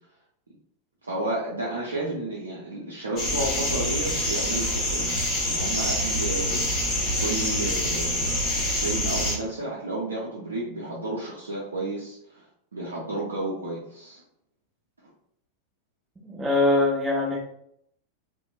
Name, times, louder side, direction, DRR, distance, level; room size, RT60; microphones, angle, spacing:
voice 1, 1.0-5.1 5.5-6.7 7.2-12.5 12.7-14.2, right 2 dB, 75° right, -5 dB, 0.5 m, -32 dB
sound 1, 3.2-9.3, left 1 dB, 20° left, 1.2 m, -26 dB
voice 2, 16.3-17.4, left 2 dB, 10° right, -6 dB, 0.6 m, -22 dB
2.9 x 2.0 x 2.3 m, 0.71 s
figure-of-eight pair, 90°, 0 cm